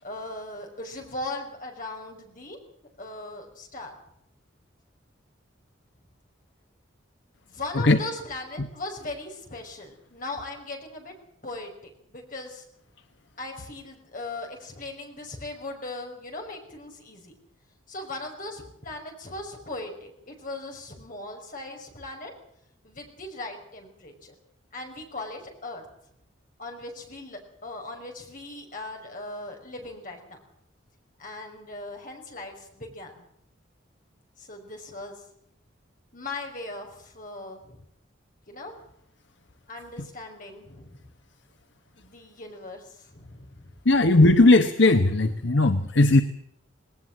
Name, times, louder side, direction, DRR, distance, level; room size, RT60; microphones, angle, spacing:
voice 1, 0.0-2.6 3.0-3.9 7.5-11.1 11.4-12.7 13.4-17.3 17.9-22.3 22.8-24.3 24.7-25.9 26.6-30.4 31.2-33.3 34.4-35.2 36.1-37.8 38.5-38.7 39.7-41.1 42.0-43.8, left 2 dB, 40° left, 2 dB, 5.7 m, -39 dB
voice 2, 43.9-46.2, left 2 dB, 60° left, 8 dB, 1.1 m, -18 dB
19.5 x 19.0 x 7.5 m, 0.73 s
head